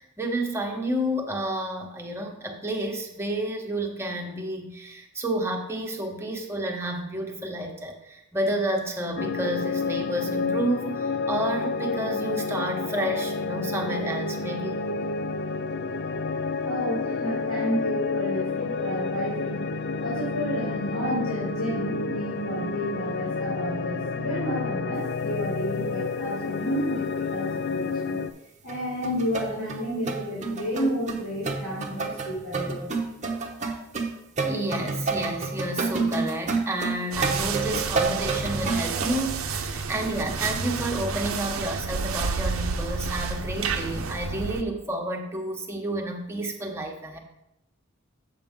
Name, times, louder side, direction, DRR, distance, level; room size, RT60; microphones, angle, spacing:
voice 1, 0.0-14.8 34.4-47.2, right 1 dB, 15° right, 1 dB, 1.1 m, -30 dB
sound 1, 9.2-28.3, left 4 dB, 55° left, 0.5 m, -30 dB
voice 2, 16.6-19.6 20.0-28.2 28.6-32.9, equal, 85° left, -8 dB, 3.2 m, -31 dB
sound 2, 28.7-28.8 29.0-39.1, right 4 dB, 35° right, 0.8 m, -29 dB
sound 3, 37.1-44.6, right 5 dB, 85° right, 0.6 m, -30 dB
8.0 x 6.8 x 3.6 m, 0.85 s
head